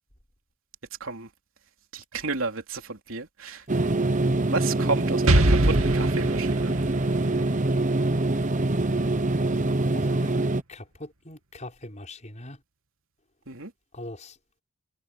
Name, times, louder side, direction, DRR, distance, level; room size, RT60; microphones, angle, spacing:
voice 1, 1.9-3.6 4.5-6.7 13.5-13.7, right 3 dB, 70° right, 3.4 m, -32 dB
sound 1, 3.7-10.6, right 2 dB, 35° right, 1.0 m, -24 dB
Explosion, 5.3-9.0, right 1 dB, 90° right, 2.6 m, -25 dB
voice 2, 10.0-10.3 10.7-12.6 13.9-14.3, left 1 dB, 35° left, 6.1 m, -41 dB
head